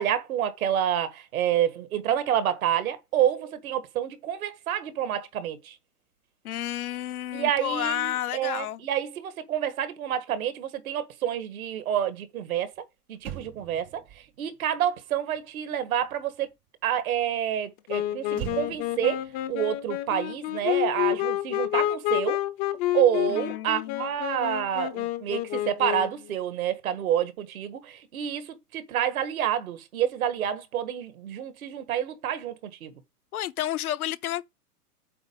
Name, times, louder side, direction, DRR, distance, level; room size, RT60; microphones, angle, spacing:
voice 1, 0.0-5.8 7.3-12.7 13.1-14.0 14.4-16.5 16.8-19.2 19.5-22.4 22.9-32.9, right 10 dB, 60° right, 1.7 m, -28 dB
voice 2, 6.4-8.8 23.3-24.0 33.3-34.4, left 13 dB, 65° left, 0.9 m, -31 dB
Motor vehicle (road), 12.7-12.8 13.1-16.7 18.3-20.9 21.2-21.4, right 11 dB, 20° right, 0.5 m, -44 dB
Wind instrument woodwind instrument, 17.9-26.3, left 14 dB, 25° left, 0.7 m, -29 dB
8.0 x 4.3 x 5.3 m
hypercardioid pair, 130°, 47 cm